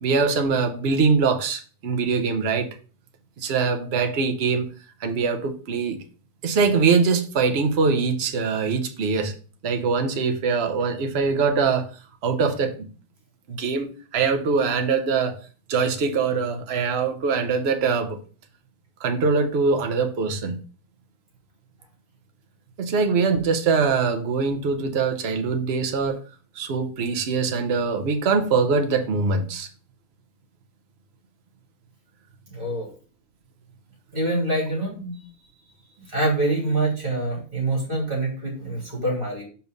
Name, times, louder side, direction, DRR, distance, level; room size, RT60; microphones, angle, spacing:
voice 1, 0.0-2.7 3.4-4.7 5.0-6.0 6.4-9.3 9.6-11.9 12.2-12.9 13.5-15.4 15.7-18.2 19.0-20.6 22.8-26.2 26.5-29.7, right 5 dB, 75° right, 6 dB, 0.5 m, -23 dB
voice 2, 32.5-32.9 34.1-35.2 36.1-39.4, right 2 dB, 25° right, -4 dB, 3.2 m, -25 dB
5.4 x 4.6 x 5.1 m, 0.39 s
omnidirectional pair, 2.3 m